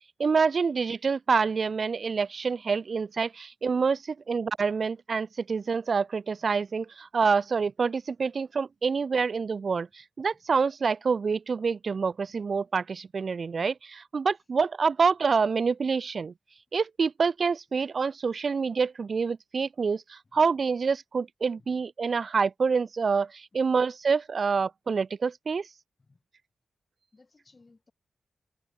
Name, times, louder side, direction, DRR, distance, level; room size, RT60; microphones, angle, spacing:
voice 1, 0.2-16.3 16.7-25.6, right 5 dB, 55° right, 0.4 m, -27 dB
voice 2, 27.1-27.9, left 3 dB, 35° left, 7.2 m, -61 dB
cardioid pair, 85°, 0 cm